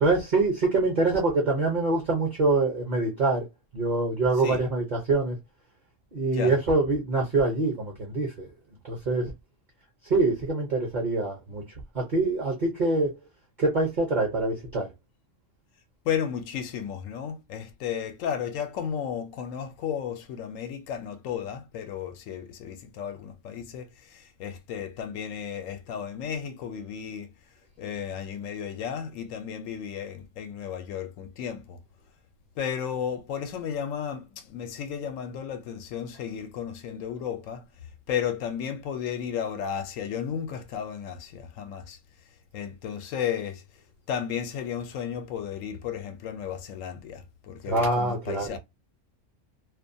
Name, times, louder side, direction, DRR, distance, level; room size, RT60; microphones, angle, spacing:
voice 1, 0.0-3.4 3.7-5.4 6.1-8.5 8.8-9.3 10.1-11.6 11.9-13.1 13.6-14.9 47.7-48.6, right 3 dB, 40° right, 0.8 m, -25 dB
voice 2, 16.1-27.3 27.8-31.8 32.6-37.6 38.1-42.0 42.5-43.6 44.1-48.6, left 8 dB, 80° left, 1.0 m, -33 dB
2.4 x 2.2 x 2.6 m
omnidirectional pair, 1.4 m